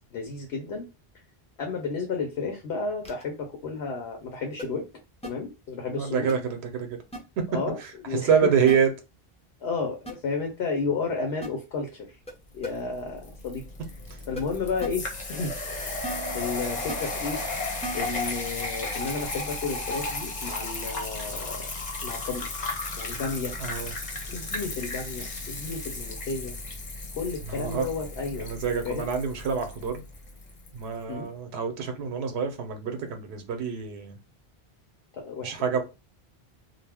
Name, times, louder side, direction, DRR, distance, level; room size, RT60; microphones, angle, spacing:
voice 1, 0.1-0.9 1.6-4.9 5.2-6.3 7.5-7.8 8.1-8.5 9.6-12.2 12.5-13.6 14.3-15.5 16.3-17.4 17.9-21.7 22.0-22.5 23.0-23.6 24.3-26.5 27.1-28.5 28.8-29.1 31.1-31.3 35.1-35.6, left 4 dB, 85° left, 0.9 m, -32 dB
sound 1, 3.0-3.2 4.6-4.7 5.2-5.3 6.3-6.4 7.1-7.2 8.7-8.8 10.1-10.2 11.4-11.5 12.3-12.4 12.6-12.7 14.4-14.5 14.8-14.9 16.0-16.4 16.9-17.0 17.8-18.2 19.1-19.2, right 1 dB, 10° left, 0.5 m, -36 dB
voice 2, 6.0-7.0 7.4-7.5 7.8-7.9 8.2-8.9 23.6-23.9 27.5-27.9 28.4-30.0 30.7-34.2 35.4-35.8, right 6 dB, 90° right, 0.8 m, -26 dB
sound 2, 12.7-30.7, left 2 dB, 45° left, 0.7 m, -35 dB
2.3 x 2.0 x 3.3 m
omnidirectional pair, 1.0 m